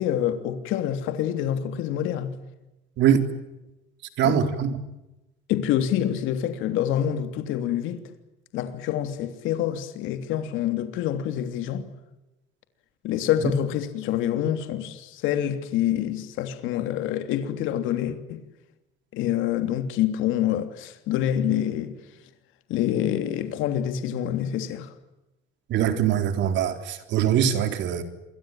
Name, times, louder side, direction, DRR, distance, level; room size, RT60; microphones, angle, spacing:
voice 1, 0.0-2.3 4.2-4.4 5.5-8.0 8.5-11.9 13.0-18.4 19.1-21.9 22.7-24.9, left 11 dB, 70° left, 3.2 m, -26 dB
voice 2, 4.2-4.7 25.7-28.0, right 9 dB, 60° right, 3.8 m, -22 dB
28.0 x 23.0 x 9.1 m
cardioid pair, 140°, 21 cm